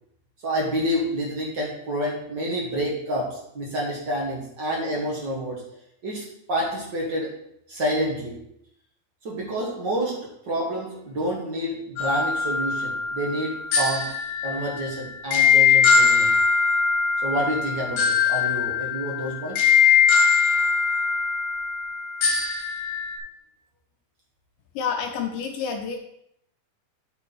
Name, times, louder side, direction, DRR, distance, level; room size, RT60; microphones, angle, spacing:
voice 1, 0.4-5.6 6.0-7.3 7.7-8.4 9.2-10.2 10.5-14.1 14.4-16.3 17.2-19.7, equal, 55° right, -3 dB, 1.2 m, -28 dB
sound 1, 12.0-23.2, left 6 dB, 60° left, 3.0 m, -21 dB
voice 2, 24.8-26.0, left 6 dB, 75° left, 4 dB, 2.0 m, -28 dB
9.2 x 6.5 x 4.0 m, 0.74 s
omnidirectional pair, 4.6 m